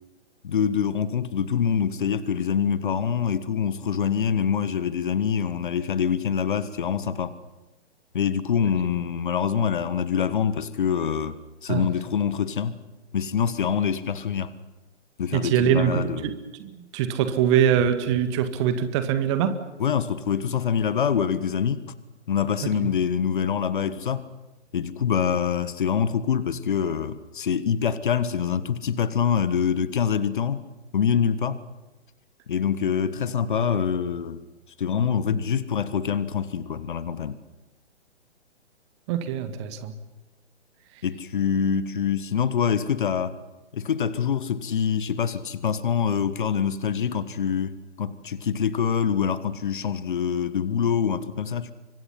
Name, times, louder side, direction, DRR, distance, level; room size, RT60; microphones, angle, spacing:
voice 1, 0.4-7.3 8.1-11.4 11.6-12.8 13.1-14.6 15.2-16.3 19.8-21.8 22.3-24.2 24.7-30.6 30.9-31.6 32.5-34.4 34.8-37.4 41.0-43.4 43.7-51.7, left 7 dB, 45° left, 14 dB, 1.5 m, -25 dB
voice 2, 15.3-19.6 22.6-22.9 39.1-39.9, right 9 dB, 25° right, 10 dB, 1.9 m, -23 dB
29.5 x 25.0 x 5.8 m, 1.1 s
figure-of-eight pair, 130°, 35 cm